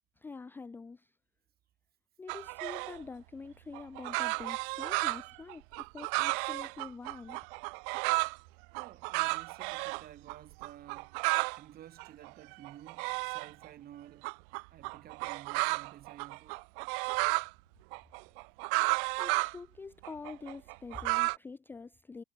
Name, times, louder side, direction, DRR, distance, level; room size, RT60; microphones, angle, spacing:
voice 1, 0.2-1.1 2.2-7.4 19.2-22.2, left 4 dB, 5° left, 0.5 m, -46 dB
sound 1, 2.3-3.0 3.7-8.4 8.7-10.0 10.3-10.4 10.6-11.6 12.0-13.7 14.2-17.5 17.9-19.6 20.0-21.4, right 36 dB, 60° right, 0.5 m, -33 dB
voice 2, 8.8-11.1 11.5-14.3 14.7-16.6, right 11 dB, 30° right, 7.2 m, -52 dB
cardioid pair, 170°, 30 cm